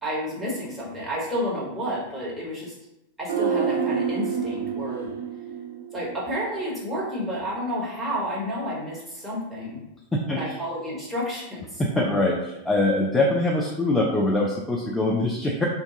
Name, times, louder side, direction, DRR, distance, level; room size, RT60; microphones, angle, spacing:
voice 1, 0.0-2.7 3.2-5.1 5.9-9.8 10.3-11.8, equal, 5° right, -6 dB, 1.2 m, -30 dB
sound 1, 3.3-6.6 6.8-6.9, right 6 dB, 65° right, 0.6 m, -28 dB
voice 2, 12.0-15.7, left 2 dB, 10° left, -2 dB, 0.4 m, -23 dB
2.6 x 2.2 x 3.8 m, 0.92 s
figure-of-eight pair, 90°, 0 cm